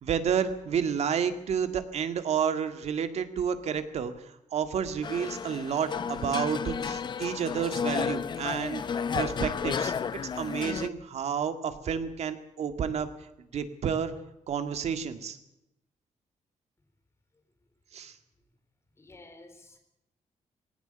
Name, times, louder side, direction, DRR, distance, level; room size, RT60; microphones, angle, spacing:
voice 1, 0.0-8.8 9.1-9.9 10.4-13.1 13.5-14.1 14.5-15.4 17.9-18.1, right 7 dB, 60° right, 9 dB, 2.0 m, -30 dB
sound 1, 5.0-10.9, left 6 dB, 40° left, 0.7 m, -32 dB
voice 2, 19.0-19.8, left 2 dB, 20° left, 5 dB, 4.3 m, -52 dB
19.0 x 17.5 x 8.9 m, 0.84 s
wide cardioid pair, 170°, 13 cm